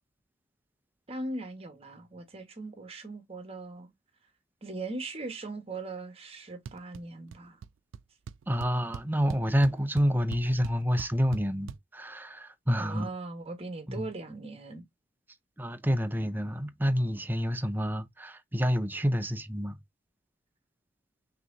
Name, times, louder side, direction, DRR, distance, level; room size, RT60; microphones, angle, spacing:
voice 1, 1.1-3.9 4.6-7.6 12.7-14.8, right 2 dB, 30° right, 1.2 m, -39 dB
sound 1, 6.7-7.0 7.3-7.7 7.9-8.0 8.3-11.8, right 6 dB, 90° right, 0.3 m, -41 dB
voice 2, 8.5-13.1 13.9-14.1 15.6-19.7, equal, 10° right, 0.5 m, -28 dB
5.8 x 2.9 x 2.5 m
head